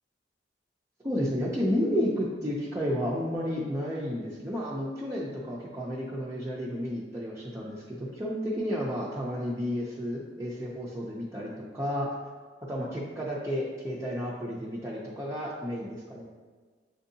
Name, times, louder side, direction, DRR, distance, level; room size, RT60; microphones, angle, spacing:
voice 1, 1.0-12.1 12.7-16.2, equal, 15° right, -6 dB, 0.4 m, -32 dB
7.3 x 2.7 x 2.7 m, 1.5 s
head